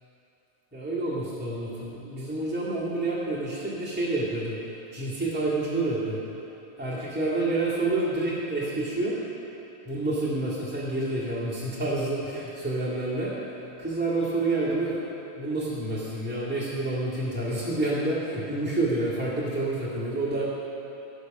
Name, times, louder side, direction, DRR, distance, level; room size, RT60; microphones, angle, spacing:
voice 1, 0.7-4.6 4.9-6.2 6.8-9.2 9.8-13.3 13.8-15.0 15.3-20.5, right 2 dB, 5° right, -9 dB, 1.4 m, -28 dB
18.5 x 6.6 x 5.4 m, 3.0 s
omnidirectional pair, 3.4 m